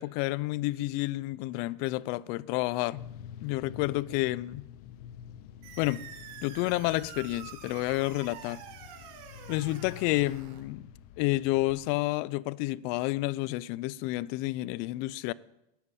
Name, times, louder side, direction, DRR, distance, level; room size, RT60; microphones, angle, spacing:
voice 1, 0.0-3.0 3.4-4.6 5.8-6.1 6.4-8.6 9.5-10.8 11.2-15.3, left 19 dB, 50° left, 0.5 m, -30 dB
sound 1, 3.0-11.9, left 9 dB, 65° left, 0.9 m, -48 dB
sound 2, 5.6-10.6, right 8 dB, 60° right, 4.2 m, -47 dB
16.0 x 8.1 x 8.9 m
supercardioid pair, 150°, 21 cm